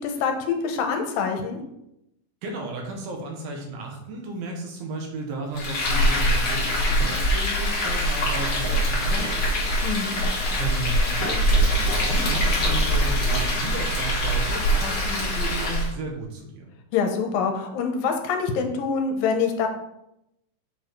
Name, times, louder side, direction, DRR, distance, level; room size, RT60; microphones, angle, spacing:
voice 1, 0.0-1.6 9.8-10.1 16.9-19.7, left 5 dB, 75° left, 4 dB, 2.5 m, -25 dB
voice 2, 2.4-16.7, right 2 dB, 75° right, 1 dB, 3.0 m, -34 dB
Frying (food), 5.5-15.9, equal, 40° left, 1.7 m, -23 dB
7.4 x 4.7 x 4.6 m, 0.84 s
omnidirectional pair, 4.3 m